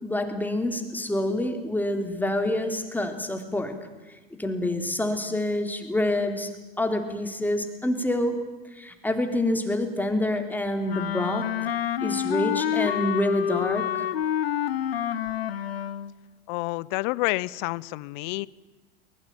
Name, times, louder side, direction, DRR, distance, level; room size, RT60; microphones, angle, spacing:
voice 1, 0.0-3.8 4.4-6.5 6.8-8.4 8.7-11.5 12.0-14.1, left 1 dB, 5° left, 5 dB, 3.5 m, -27 dB
Wind instrument woodwind instrument, 10.9-16.1, left 10 dB, 85° left, 1.0 m, -28 dB
voice 2, 16.5-18.5, left 22 dB, 55° left, 23 dB, 0.8 m, -29 dB
23.0 x 21.0 x 9.1 m, 1.2 s
hypercardioid pair, 90°, 29 cm